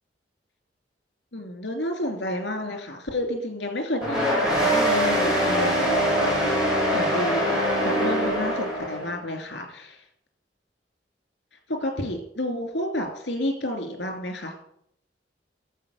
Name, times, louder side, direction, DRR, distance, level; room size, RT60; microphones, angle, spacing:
voice 1, 1.3-10.0 11.7-14.5, left 1 dB, 80° left, 5 dB, 3.1 m, -30 dB
sound 1, 4.0-9.1, equal, ahead, 5.7 m, -23 dB
12.5 x 7.5 x 6.6 m, 0.71 s
head